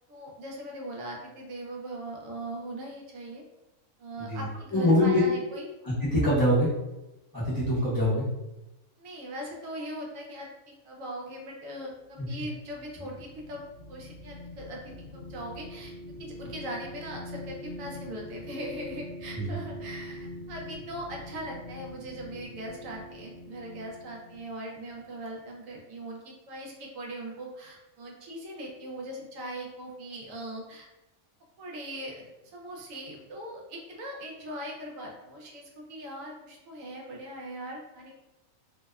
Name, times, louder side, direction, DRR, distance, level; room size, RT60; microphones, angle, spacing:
voice 1, 0.1-3.4 4.0-5.7 9.0-13.6 13.9-15.9 16.2-30.9 31.6-32.3 32.5-38.2, right 1 dB, 70° right, -1 dB, 0.9 m, -40 dB
voice 2, 4.7-5.2 5.8-6.7 7.3-8.3 12.2-12.3 19.3-19.5, left 1 dB, 25° left, -11 dB, 0.5 m, -24 dB
sound 1, 12.1-25.8, left 1 dB, 65° left, 0.7 m, -44 dB
2.7 x 2.0 x 2.3 m, 0.98 s
omnidirectional pair, 1.5 m